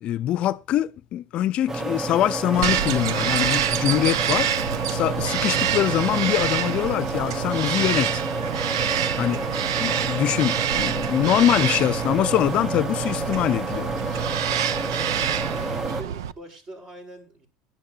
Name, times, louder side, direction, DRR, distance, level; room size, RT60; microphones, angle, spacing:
voice 1, 0.0-4.5 4.9-8.2 9.2-9.4 9.8-14.2, left 12 dB, 50° left, 0.6 m, -24 dB
sound 1, 1.7-16.0, right 2 dB, 20° right, 0.9 m, -30 dB
Cheering / Fireworks, 2.5-8.5, right 7 dB, 65° right, 1.4 m, -46 dB
Bird vocalization bird call bird song, 2.6-16.3, right 10 dB, 90° right, 0.6 m, -27 dB
voice 2, 15.5-17.5, right 1 dB, 40° right, 7.2 m, -43 dB
18.0 x 11.0 x 2.8 m
supercardioid pair, 95°, 2 cm